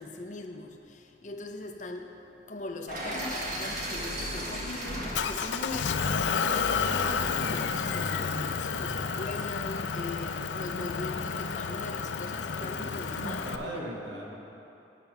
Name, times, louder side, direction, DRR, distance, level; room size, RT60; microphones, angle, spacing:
voice 1, 0.0-2.1 2.5-6.1 6.4-13.5 13.7-14.0, left 2 dB, 45° left, 4 dB, 0.7 m, -40 dB
sound 1, 2.9-6.9, equal, 45° right, 1.6 m, -36 dB
Motor vehicle (road) / Engine, 5.1-13.6, left 6 dB, 90° left, 0.4 m, -30 dB
voice 2, 12.6-14.4, right 1 dB, 90° right, -1 dB, 1.3 m, -39 dB
8.7 x 6.9 x 5.9 m, 2.9 s
head